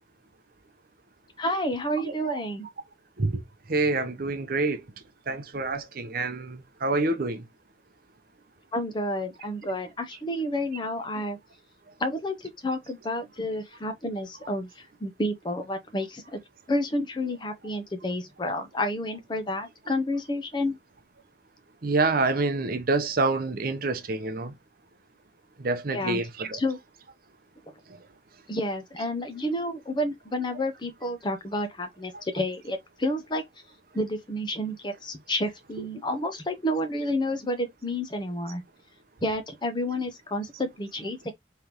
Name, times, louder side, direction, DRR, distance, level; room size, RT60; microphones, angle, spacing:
voice 1, 1.4-2.7 8.7-11.4 12.0-14.7 15.0-16.4 16.7-20.8 25.9-26.2 26.5-26.8 28.5-33.4 33.9-38.6 39.2-41.3, left 1 dB, 25° left, 0.8 m, -30 dB
voice 2, 2.0-2.4 3.2-3.4 3.7-4.8 5.3-7.4 21.8-24.5 25.6-26.6, right 3 dB, 50° right, 0.7 m, -27 dB
3.7 x 3.4 x 2.9 m
head